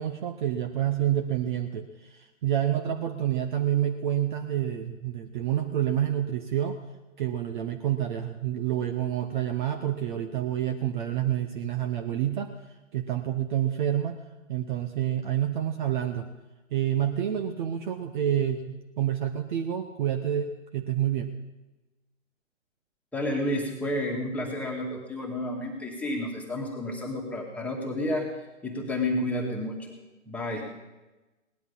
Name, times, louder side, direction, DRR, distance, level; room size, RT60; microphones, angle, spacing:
voice 1, 0.0-6.8 7.2-12.5 12.9-14.2 14.5-16.3 16.7-21.3, right 10 dB, 40° right, 6 dB, 0.9 m, -28 dB
voice 2, 23.1-29.9 30.3-30.6, left 1 dB, 5° left, -1 dB, 1.9 m, -31 dB
18.0 x 11.0 x 5.5 m, 1.1 s
figure-of-eight pair, 135°, 39 cm